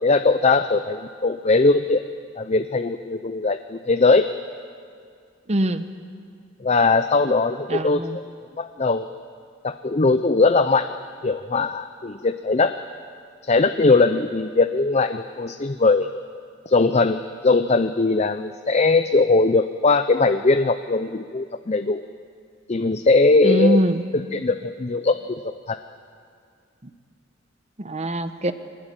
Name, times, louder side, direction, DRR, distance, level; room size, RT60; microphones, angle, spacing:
voice 1, 0.0-2.0 2.4-4.3 6.6-8.2 8.6-9.1 9.6-10.9 11.2-12.7 13.4-16.1 16.7-22.0 22.7-23.8 24.1-25.4 25.7-25.8, left 3 dB, 35° left, 9 dB, 0.6 m, -20 dB
voice 2, 5.5-5.8 7.7-8.2 23.4-24.0 27.8-28.5, right 1 dB, 35° right, 10 dB, 1.0 m, -22 dB
24.0 x 20.0 x 9.0 m, 2.2 s
head